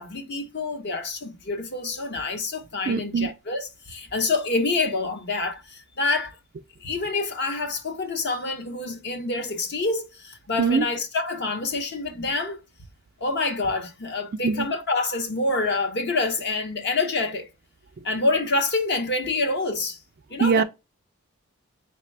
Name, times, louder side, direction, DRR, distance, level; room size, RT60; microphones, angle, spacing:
voice 1, 0.0-6.4 6.8-12.6 13.2-17.5 18.0-20.0 20.3-20.6, left 3 dB, 50° left, 0.9 m, -27 dB
voice 2, 2.9-3.3 10.6-10.9 14.4-14.7 20.4-20.6, right 5 dB, 45° right, 0.3 m, -22 dB
4.1 x 3.2 x 3.2 m
head